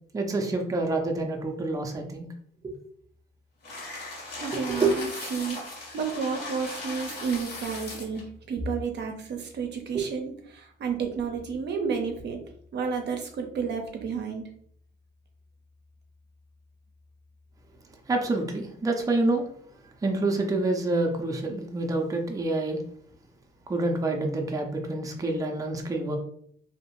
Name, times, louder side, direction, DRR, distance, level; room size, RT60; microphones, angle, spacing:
voice 1, 0.1-2.3 2.6-2.7 4.5-4.9 9.9-10.1 18.1-19.4 20.0-22.8 23.7-26.2, right 2 dB, 15° right, 2 dB, 0.5 m, -27 dB
sound 1, 3.6-8.2, left 2 dB, 55° left, 1.4 m, -38 dB
voice 2, 4.4-8.2 8.5-12.4 12.7-14.4, right 5 dB, 60° right, 4 dB, 0.6 m, -31 dB
2.7 x 2.0 x 2.9 m, 0.63 s
cardioid pair, 90°, 20 cm